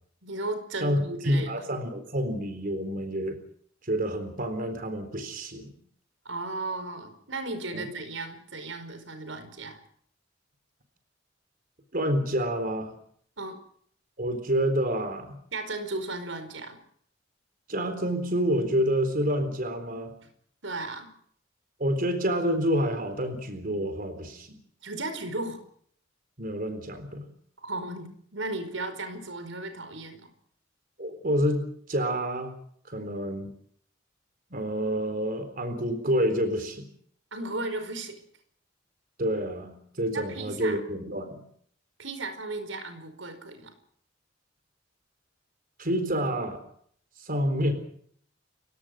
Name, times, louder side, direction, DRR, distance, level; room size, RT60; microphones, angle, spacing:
voice 1, 0.2-1.5 6.2-9.8 13.4-13.6 15.5-16.8 20.6-21.1 24.8-25.6 27.6-30.3 37.3-38.1 40.1-40.8 42.0-43.7, right 2 dB, 90° right, 9 dB, 5.0 m, -35 dB
voice 2, 0.8-3.4 3.8-5.7 7.7-7.9 11.9-12.9 14.2-15.4 17.7-20.1 21.8-24.6 26.4-27.2 31.0-32.5 32.9-33.5 34.5-36.9 39.2-41.4 45.8-46.6 47.2-47.7, equal, 50° right, 8 dB, 3.9 m, -28 dB
30.0 x 17.0 x 6.4 m, 0.62 s
head